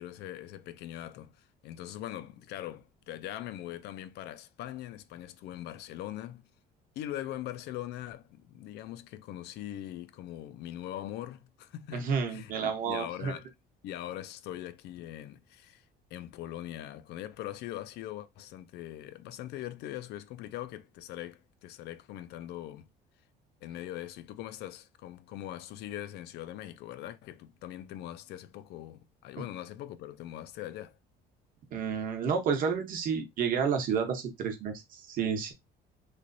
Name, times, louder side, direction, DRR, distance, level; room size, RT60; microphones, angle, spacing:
voice 1, 0.0-6.4 7.0-13.5 13.8-22.9 23.6-31.0, left 13 dB, 65° left, 0.4 m, -41 dB
voice 2, 11.9-13.3 31.7-35.5, right 6 dB, 50° right, 0.9 m, -30 dB
3.2 x 2.9 x 2.6 m
cardioid pair, 160°, 19 cm